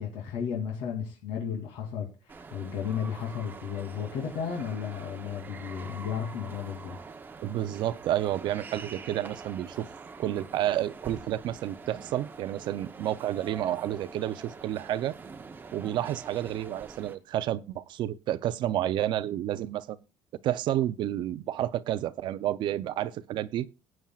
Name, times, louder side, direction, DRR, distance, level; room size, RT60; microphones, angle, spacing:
voice 1, 0.0-7.0, left 7 dB, 80° left, 2.8 m, -34 dB
sound 1, 2.3-17.2, right 4 dB, 20° right, 0.8 m, -45 dB
voice 2, 7.4-9.9 10.2-15.2 15.7-20.0 20.4-23.7, right 12 dB, 50° right, 0.6 m, -30 dB
18.5 x 8.8 x 2.4 m
cardioid pair, 160°, 10 cm